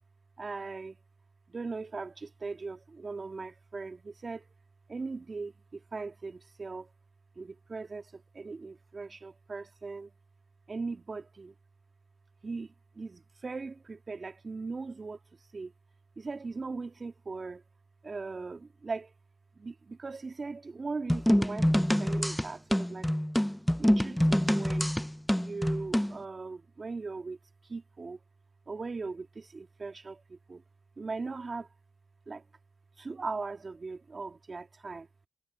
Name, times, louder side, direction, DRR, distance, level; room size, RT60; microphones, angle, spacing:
voice 1, 0.4-1.0 1.5-4.5 4.9-6.9 7.4-10.1 10.7-11.5 12.4-15.2 15.5-15.7 16.2-17.6 18.0-19.1 19.6-23.1 23.8-24.9 25.4-27.4 27.7-28.2 28.7-30.6 31.0-31.7 32.3-32.4 33.0-35.1, right 4 dB, 30° right, 1.9 m, -39 dB
sound 1, 21.1-26.2, equal, 5° left, 0.6 m, -26 dB
cardioid pair, 90°, 0 cm